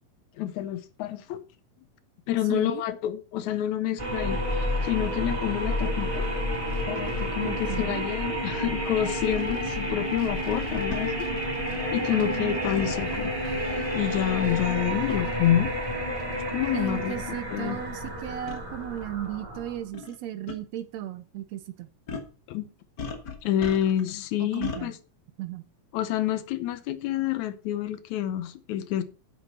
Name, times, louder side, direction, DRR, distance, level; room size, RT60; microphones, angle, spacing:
voice 1, 0.4-1.4 2.3-6.3 6.9-11.3 11.6-11.7 11.9-13.3 13.9-15.7 16.5-17.2 17.5-17.8 22.5-22.7 23.4-25.0 25.9-29.0, left 11 dB, 80° left, 2.2 m, -28 dB
voice 2, 2.5-2.8 7.4-8.0 12.1-12.9 16.7-21.9 24.4-24.9 25.4-25.6, right 12 dB, 75° right, 1.9 m, -36 dB
sound 1, 4.0-19.9, equal, 10° right, 2.0 m, -30 dB
sound 2, 9.3-9.5 10.9-11.1 12.7-12.9 14.7-14.9 15.7-15.8 16.6-16.7 17.0-17.1 18.5-18.6 19.9-20.2 20.5-20.6 22.1-22.3 23.0-24.1 24.6-24.8, left 4 dB, 45° left, 1.6 m, -36 dB
9.4 x 8.4 x 4.3 m
omnidirectional pair, 3.3 m